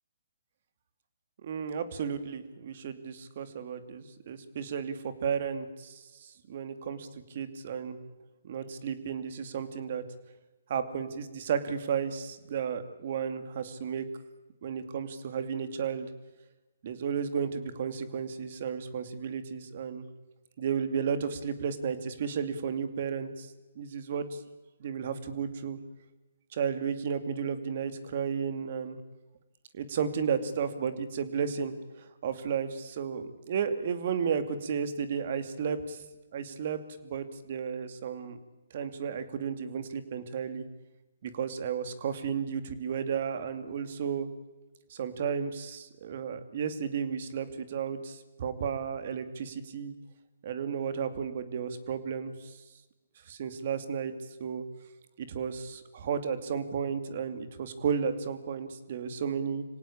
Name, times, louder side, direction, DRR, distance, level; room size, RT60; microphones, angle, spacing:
voice 1, 1.4-5.9 6.5-7.1 7.3-8.0 8.4-10.0 10.7-14.0 14.6-16.1 16.8-20.1 20.6-23.5 23.8-24.2 24.8-25.8 26.5-29.0 29.7-36.0 36.3-38.4 38.7-40.6 41.2-44.3 44.9-49.9 50.4-52.5 53.3-54.1 54.4-54.6 55.2-59.6, right 7 dB, 50° right, 11 dB, 2.6 m, -33 dB
26.0 x 17.5 x 8.8 m, 1.1 s
hypercardioid pair, 150°, 0 cm